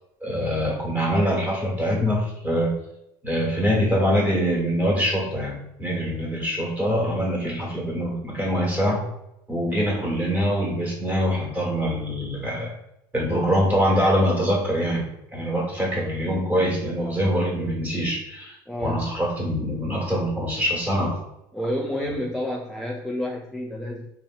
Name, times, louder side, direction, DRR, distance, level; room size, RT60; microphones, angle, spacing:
voice 1, 0.2-2.7 3.2-9.1 9.5-12.8 13.1-15.1 15.3-18.6 18.8-21.2 22.0-22.2, equal, 15° right, -3 dB, 1.1 m, -24 dB
voice 2, 18.7-19.1 21.5-24.1, left 1 dB, ahead, -1 dB, 0.3 m, -29 dB
2.9 x 2.5 x 2.3 m, 0.84 s
supercardioid pair, 100°, 10 cm